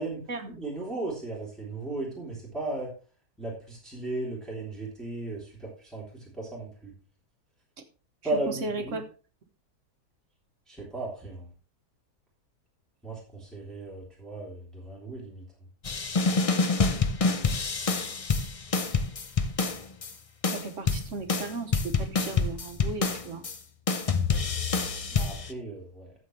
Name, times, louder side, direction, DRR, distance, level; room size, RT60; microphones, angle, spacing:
voice 1, 0.0-2.9 3.4-6.9 8.2-9.0 10.7-11.5 13.0-15.5 25.1-26.1, right 2 dB, ahead, -5 dB, 3.4 m, -36 dB
voice 2, 8.5-9.0 17.9-18.2 20.5-23.4, right 3 dB, 55° right, 6 dB, 1.3 m, -36 dB
sound 1, 15.8-20.1 20.4-23.6 23.9-25.5, left 4 dB, 40° left, 0.4 m, -27 dB
13.5 x 7.4 x 3.3 m, 0.37 s
omnidirectional pair, 1.6 m